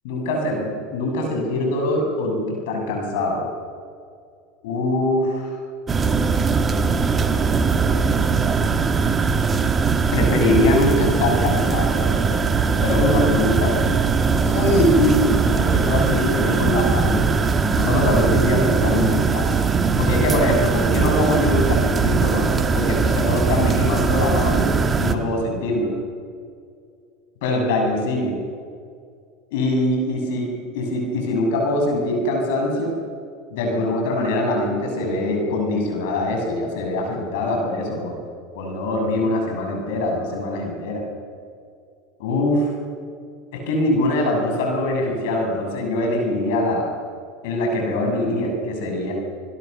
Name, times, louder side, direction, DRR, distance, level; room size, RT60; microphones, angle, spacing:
voice 1, 0.0-3.5 4.6-5.6 10.1-12.4 12.8-14.0 14.3-17.2 17.7-19.5 20.0-24.7 25.0-25.9 27.4-28.4 29.5-30.5 30.7-33.0 33.5-38.2 38.6-41.0 42.2-42.7 43.5-46.9 47.4-49.1, left 1 dB, 75° left, 1 dB, 7.1 m, -22 dB
sound 1, 5.9-25.2, right 5 dB, 25° right, 1.8 m, -20 dB
27.0 x 21.0 x 6.8 m, 2.3 s
hypercardioid pair, 95°, 0 cm